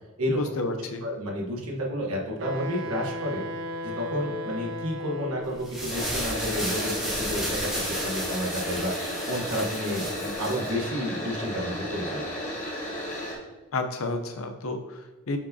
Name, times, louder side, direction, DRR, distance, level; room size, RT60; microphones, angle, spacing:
voice 1, 0.3-1.0 13.7-15.4, left 2 dB, 75° left, 6 dB, 0.6 m, -31 dB
voice 2, 1.0-3.4 3.8-7.6 7.9-12.2, equal, 85° right, -2 dB, 1.3 m, -31 dB
Wind instrument woodwind instrument, 2.4-5.8, equal, 55° right, 0.4 m, -35 dB
sound 1, 5.5-10.7, equal, 5° right, 1.3 m, -33 dB
sound 2, 5.9-13.3, equal, 35° left, 1.2 m, -33 dB
7.2 x 4.7 x 2.7 m, 1.2 s
head